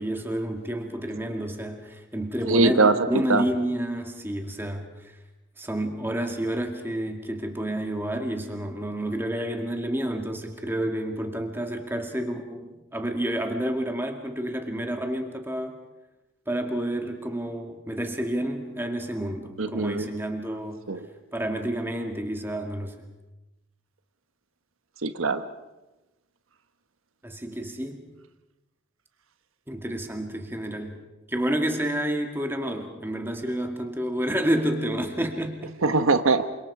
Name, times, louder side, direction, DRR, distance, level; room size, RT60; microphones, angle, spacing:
voice 1, 0.0-5.1 5.6-15.8 16.5-20.9 21.3-23.0 27.2-28.0 29.7-31.0 31.3-35.7, right 1 dB, 10° right, 4 dB, 2.2 m, -29 dB
voice 2, 2.5-3.4 19.6-20.1 20.9-21.1 25.0-25.4 35.8-36.5, right 3 dB, 80° right, 10 dB, 1.2 m, -22 dB
28.0 x 25.5 x 4.9 m, 1.0 s
head